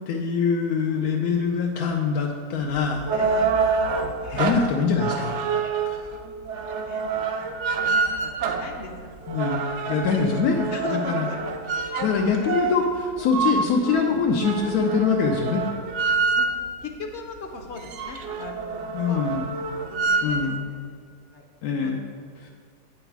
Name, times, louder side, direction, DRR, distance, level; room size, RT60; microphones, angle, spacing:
voice 1, 0.1-3.0 4.3-5.3 5.8-6.1 7.3-7.5 9.3-11.3 12.0-15.6 18.9-19.6 20.2-20.7 21.6-22.0 22.4-22.5, left 5 dB, 85° left, 1 dB, 1.1 m, -24 dB
sound 1, 2.7-16.8 17.3-17.4 17.6-20.5, right 5 dB, 65° right, 0.8 m, -27 dB
voice 2, 3.1-3.5 4.2-4.5 5.2-5.7 6.1-9.1 9.4-10.3 10.7-12.8 14.0-14.2 16.3-16.5 16.8-20.8 21.3-21.5 21.8-21.9, left 2 dB, 60° left, 3 dB, 0.8 m, -39 dB
9.0 x 4.0 x 4.6 m, 2.1 s
omnidirectional pair, 1.6 m